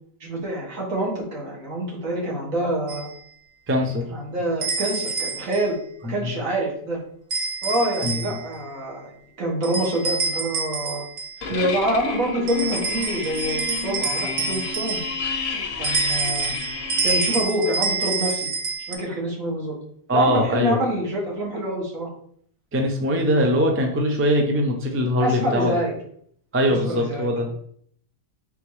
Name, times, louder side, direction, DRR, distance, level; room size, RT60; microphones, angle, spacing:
voice 1, 0.2-3.1 4.1-5.8 6.1-7.0 7.6-9.0 9.4-11.0 11.5-15.0 15.8-16.5 17.0-18.5 18.9-19.8 20.1-22.1 25.2-25.9 26.7-27.3, right 1 dB, 80° right, -3 dB, 1.8 m, -26 dB
sound 1, 2.9-3.1 4.6-5.7 7.3-8.5 9.6-11.4 12.5-15.3 15.8-18.9, right 4 dB, 55° right, 0.6 m, -27 dB
voice 2, 3.7-4.1 6.0-6.3 8.0-8.2 20.1-20.8 22.7-25.7 26.5-27.5, equal, 20° right, 2 dB, 0.3 m, -22 dB
sound 2, 11.4-17.4, left 4 dB, 55° left, 0.7 m, -30 dB
3.9 x 3.5 x 3.1 m, 0.62 s
omnidirectional pair, 1.4 m